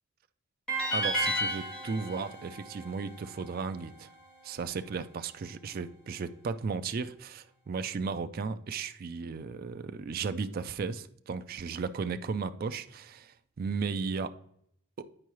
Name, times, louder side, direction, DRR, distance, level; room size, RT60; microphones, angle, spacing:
sound 1, 0.7-3.8, equal, 5° left, 2.1 m, -33 dB
voice 1, 0.9-4.1 4.4-14.3 15.0-15.1, right 5 dB, 45° right, 0.3 m, -35 dB
9.8 x 4.5 x 3.0 m
head